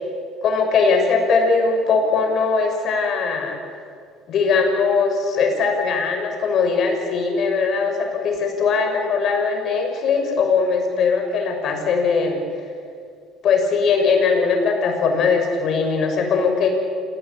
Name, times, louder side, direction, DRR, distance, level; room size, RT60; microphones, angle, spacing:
voice 1, 0.4-3.6 4.3-12.4 13.4-16.7, left 5 dB, 55° left, 4 dB, 6.3 m, -20 dB
28.0 x 18.0 x 8.7 m, 2.3 s
supercardioid pair, 95°, 0 cm